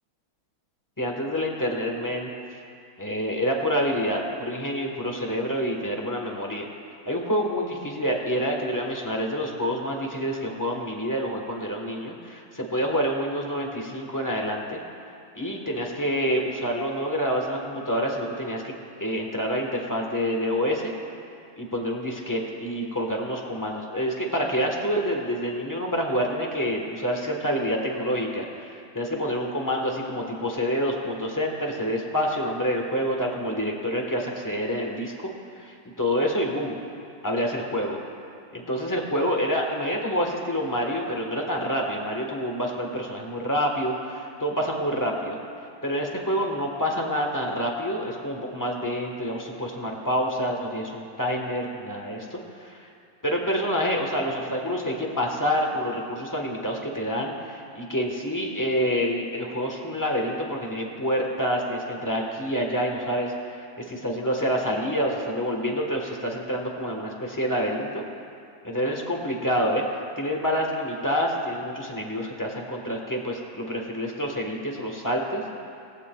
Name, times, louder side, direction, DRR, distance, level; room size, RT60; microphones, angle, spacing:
voice 1, 1.0-2.3 3.0-6.7 7.0-14.8 15.3-18.7 19.0-20.9 21.6-35.3 35.6-36.8 37.2-38.0 38.5-45.4 45.8-52.9 53.2-68.0 68.6-69.8 70.2-75.4, equal, 15° left, 0 dB, 0.9 m, -27 dB
19.0 x 15.0 x 2.3 m, 2.5 s
omnidirectional pair, 2.1 m